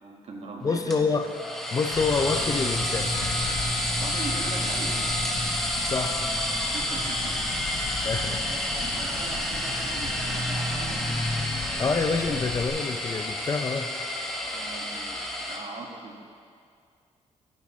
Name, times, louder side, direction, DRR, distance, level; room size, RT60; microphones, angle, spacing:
voice 1, 0.0-1.0 4.0-4.9 6.7-7.3 8.0-11.1 14.5-16.3, right 3 dB, 60° right, -1 dB, 1.7 m, -40 dB
voice 2, 0.6-1.3 1.7-3.1 5.9-6.2 8.0-8.4 11.8-13.9, left 4 dB, 30° left, 8 dB, 0.5 m, -27 dB
sound 1, 0.9-15.6, left 1 dB, 5° left, 1.3 m, -29 dB
sound 2, 1.9-12.7, left 5 dB, 85° left, 1.4 m, -39 dB
14.0 x 9.7 x 3.1 m, 2.2 s
cardioid pair, 130°, 12 cm